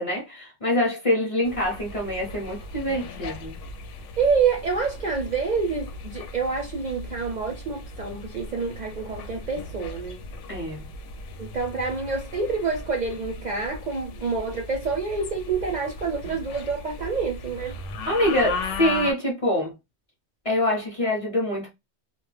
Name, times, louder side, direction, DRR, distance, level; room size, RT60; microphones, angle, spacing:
voice 1, 0.0-3.5 10.5-10.9 18.0-19.7 20.4-21.7, left 1 dB, 35° left, 0.6 m, -25 dB
sound 1, 1.4-19.1, left 3 dB, 90° left, 0.9 m, -37 dB
voice 2, 4.2-10.2 11.4-17.8, right 5 dB, 50° right, 0.5 m, -27 dB
2.2 x 2.1 x 3.1 m
omnidirectional pair, 1.2 m